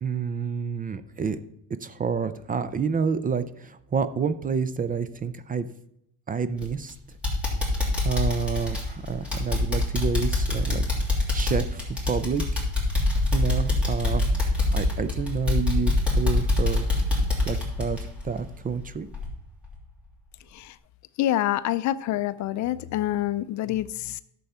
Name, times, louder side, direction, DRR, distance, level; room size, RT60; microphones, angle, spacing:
voice 1, 0.0-1.4 1.8-5.7 6.3-6.9 8.0-10.9 11.3-12.7 13.3-14.4 14.7-16.9 17.5-18.0 18.2-19.1, right 6 dB, 25° right, 13 dB, 0.4 m, -29 dB
sound 1, 6.6-6.9 7.2-18.8 19.1-19.3 19.7-19.8, left 2 dB, 5° right, 2.9 m, -25 dB
voice 2, 21.2-24.2, left 13 dB, 55° left, 15 dB, 0.5 m, -27 dB
11.5 x 6.9 x 4.3 m, 0.76 s
cardioid pair, 145°, 36 cm